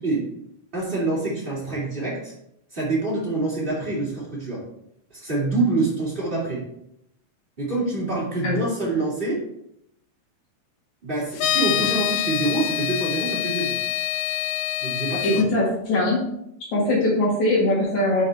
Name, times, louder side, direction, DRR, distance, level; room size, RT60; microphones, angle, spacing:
voice 1, 0.7-2.3 2.7-4.6 5.1-6.6 7.6-9.4 11.0-13.7 14.8-15.4, right 2 dB, 25° right, -6 dB, 1.1 m, -26 dB
sound 1, 11.4-15.4, left 13 dB, 80° left, 2.4 m, -25 dB
voice 2, 15.2-16.2 16.7-18.2, left 1 dB, 55° left, -4 dB, 2.7 m, -21 dB
7.5 x 5.8 x 3.4 m, 0.76 s
omnidirectional pair, 4.7 m